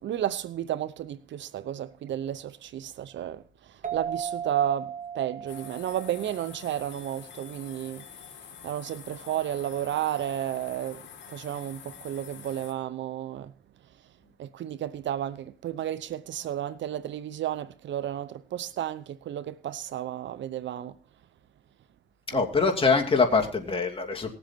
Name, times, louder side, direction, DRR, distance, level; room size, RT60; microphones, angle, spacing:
voice 1, 0.0-8.1 8.6-11.0 11.3-13.5 14.4-21.0 22.3-22.4, right 11 dB, 65° right, 0.8 m, -32 dB
sound 1, 3.8-7.1, right 8 dB, 40° right, 1.9 m, -37 dB
sound 2, 5.5-12.7, left 8 dB, 70° left, 2.3 m, -47 dB
voice 2, 22.3-24.3, left 4 dB, 25° left, 2.7 m, -24 dB
19.0 x 7.8 x 4.6 m
cardioid pair, 90°, 20 cm